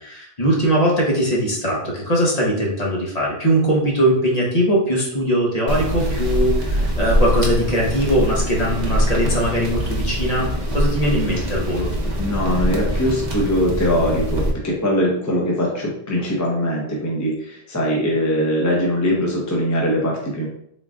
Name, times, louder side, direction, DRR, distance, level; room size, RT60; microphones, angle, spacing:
voice 1, 0.0-11.9, right 1 dB, 40° left, -3 dB, 0.9 m, -20 dB
sound 1, 5.7-14.5, equal, 45° right, 0.8 m, -23 dB
voice 2, 12.2-20.5, equal, 20° left, -3 dB, 0.6 m, -21 dB
3.8 x 2.4 x 3.5 m, 0.71 s
omnidirectional pair, 1.1 m